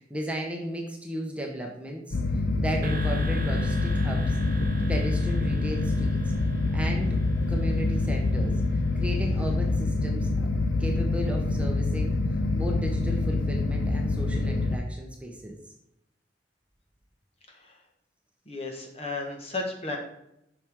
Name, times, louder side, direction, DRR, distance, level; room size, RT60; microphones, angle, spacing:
voice 1, 0.0-2.2 2.6-4.4 4.9-6.2 6.7-7.2 7.5-8.6 9.0-10.3 10.8-12.1 12.5-15.6, equal, 5° right, 0 dB, 0.9 m, -35 dB
sound 1, 2.1-14.8, left 2 dB, 80° left, 0.7 m, -26 dB
sound 2, 2.8-9.2, right 2 dB, 55° right, 0.7 m, -42 dB
voice 2, 18.5-20.0, left 2 dB, 35° left, 2 dB, 1.5 m, -34 dB
7.9 x 5.9 x 3.6 m, 0.82 s
head